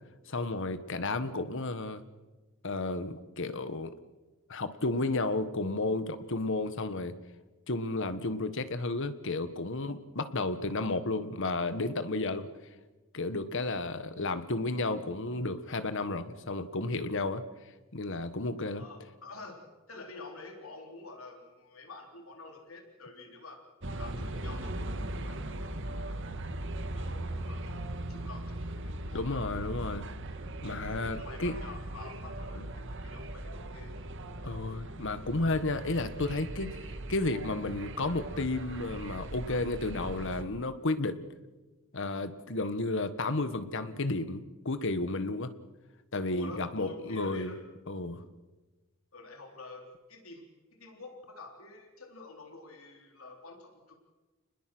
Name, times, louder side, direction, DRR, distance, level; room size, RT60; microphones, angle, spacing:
voice 1, 0.3-2.0 2.6-3.9 4.5-7.1 7.7-12.5 13.1-17.4 17.9-18.8 29.1-30.1 30.6-31.5 32.5-32.6 34.4-36.8 37.1-41.3 41.9-45.5 46.1-47.5 47.9-48.2, left 2 dB, 65° left, 11 dB, 1.5 m, -32 dB
voice 2, 18.8-23.6 24.0-26.4 26.8-29.3 31.0-34.1 46.3-47.6 49.1-50.4 50.8-53.9, left 3 dB, 80° left, 3 dB, 3.8 m, -48 dB
sound 1, 23.8-40.4, right 1 dB, 65° right, 1.6 m, -39 dB
30.0 x 20.5 x 6.2 m, 1.2 s
head